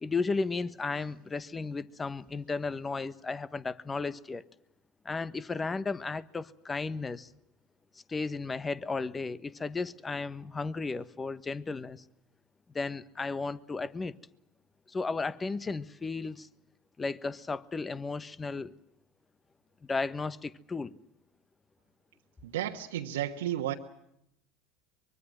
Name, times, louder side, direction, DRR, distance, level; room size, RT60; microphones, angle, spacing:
voice 1, 0.0-4.4 5.0-7.3 8.1-12.0 12.7-14.1 14.9-16.5 17.0-18.7 19.8-21.0, left 4 dB, 20° left, 1.2 m, -34 dB
voice 2, 22.4-23.7, right 12 dB, 75° right, 1.4 m, -32 dB
24.0 x 23.0 x 7.7 m
hypercardioid pair, 80°, 0 cm